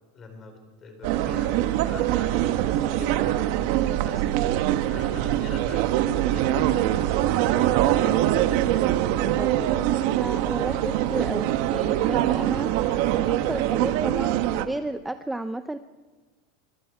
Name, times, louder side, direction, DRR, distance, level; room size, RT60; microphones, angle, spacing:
voice 1, 0.1-4.4 4.9-5.9 6.3-8.3 8.6-9.0, left 3 dB, 25° left, 5 dB, 4.5 m, -43 dB
sound 1, 1.0-14.7, right 13 dB, 55° right, 1.2 m, -23 dB
Telephone, 5.5-5.6 6.0-7.4 8.0-10.3 10.6-13.4, left 7 dB, 65° left, 3.4 m, -45 dB
voice 2, 10.2-12.7 13.1-15.8, right 2 dB, 5° right, 9 dB, 0.5 m, -32 dB
24.5 x 22.0 x 4.8 m, 1.4 s
supercardioid pair, 160°, 0 cm